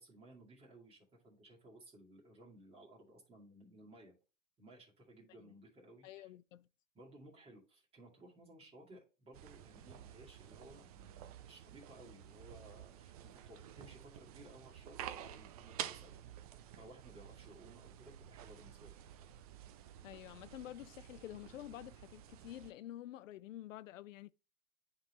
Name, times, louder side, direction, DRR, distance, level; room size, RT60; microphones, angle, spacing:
voice 1, 0.0-4.2 4.6-6.3 6.9-16.2 16.7-18.9, right 1 dB, 15° right, 2.3 m, -58 dB
voice 2, 6.0-6.7 20.0-24.3, left 13 dB, 85° left, 0.5 m, -49 dB
sound 1, 9.3-22.7, right 10 dB, 35° right, 0.4 m, -51 dB
10.0 x 3.8 x 3.1 m
hypercardioid pair, 145°, 38 cm